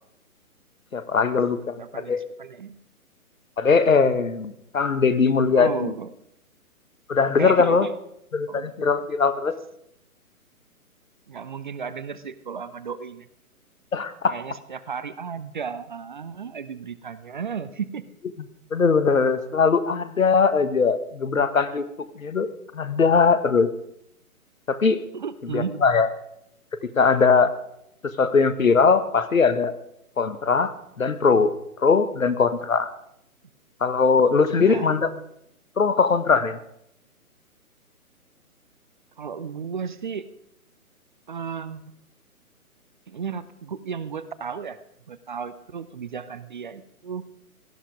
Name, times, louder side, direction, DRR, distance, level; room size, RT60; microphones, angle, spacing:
voice 1, 0.9-2.2 3.6-5.9 7.1-7.9 8.3-9.5 13.9-14.3 18.7-21.8 22.1-22.5 22.7-23.7 24.7-25.0 25.5-26.1 26.8-27.5 28.2-29.7 30.2-31.5 31.8-32.9 33.8-35.1 35.8-36.6, left 5 dB, 65° left, 13 dB, 1.5 m, -20 dB
voice 2, 1.8-2.1 2.4-2.8 5.5-6.1 7.4-7.9 8.5-8.7 11.3-13.3 14.3-18.0 25.1-25.8 34.5-35.0 39.2-40.2 41.3-41.8 43.1-44.8 45.1-47.3, right 6 dB, 35° right, 14 dB, 0.7 m, -34 dB
17.5 x 13.0 x 4.9 m, 0.76 s
figure-of-eight pair, 130°, 44 cm